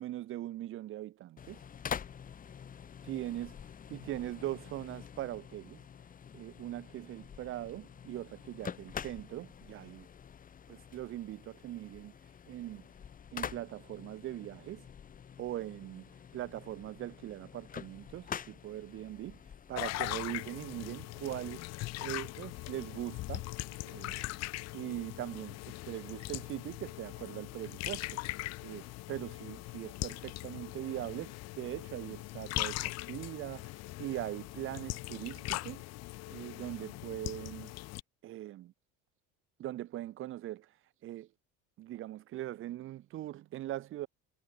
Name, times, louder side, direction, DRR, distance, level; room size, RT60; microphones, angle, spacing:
voice 1, 0.0-1.6 3.0-3.5 3.9-5.8 6.3-10.1 10.7-12.1 12.5-12.9 13.3-14.9 15.4-19.4 19.7-21.7 22.0-23.5 23.8-24.2 24.7-28.2 28.6-33.7 34.0-35.8 36.3-37.7 38.2-38.7 39.6-40.7 41.0-41.3 41.8-44.1, right 14 dB, 45° right, 1.2 m, -41 dB
sound 1, 1.4-20.9, left 8 dB, 30° left, 2.7 m, -47 dB
sound 2, 19.8-38.0, left 19 dB, 60° left, 2.0 m, -40 dB
cardioid pair, 140°, 30 cm